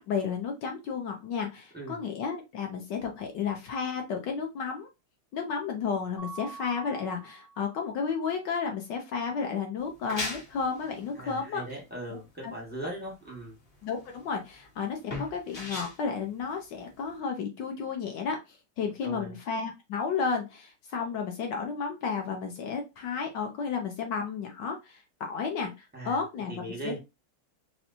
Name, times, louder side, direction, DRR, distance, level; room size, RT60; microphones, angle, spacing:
voice 1, 0.0-4.9 5.3-11.6 12.4-12.5 13.8-18.4 18.8-25.7 26.0-27.0, left 5 dB, 70° left, 3 dB, 1.1 m, -32 dB
Mallet percussion, 6.2-8.0, right 4 dB, 85° left, 2.2 m, -45 dB
sound 1, 9.8-17.2, left 2 dB, 45° left, 0.7 m, -40 dB
voice 2, 11.2-13.6 19.0-19.4 25.9-26.2 26.5-27.0, right 1 dB, 10° right, -2 dB, 0.4 m, -39 dB
4.2 x 2.2 x 2.5 m, 0.25 s
omnidirectional pair, 2.4 m